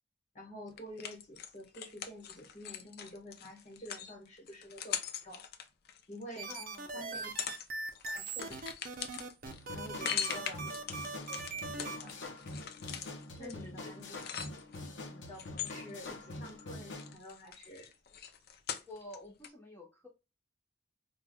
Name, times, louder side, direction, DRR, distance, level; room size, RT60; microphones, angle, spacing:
voice 1, 0.3-5.4 6.1-6.5 6.9-7.3 8.0-8.7 9.7-10.8 11.3-12.3 13.4-14.2 14.7-17.9, left 1 dB, 40° left, 1.5 m, -49 dB
sound 1, 0.8-6.6 7.1-7.7 7.9-14.9 15.3-16.6 16.9-19.2 19.4-19.5, left 8 dB, 60° left, 0.5 m, -41 dB
sound 2, 6.4-12.0, right 3 dB, 50° right, 0.6 m, -41 dB
voice 2, 6.5-7.2 10.0-10.1 13.3-13.9 18.9-20.1, left 2 dB, 10° left, 1.0 m, -50 dB
sound 3, 9.5-17.1, left 2 dB, 85° left, 0.8 m, -45 dB
4.7 x 2.3 x 2.2 m
head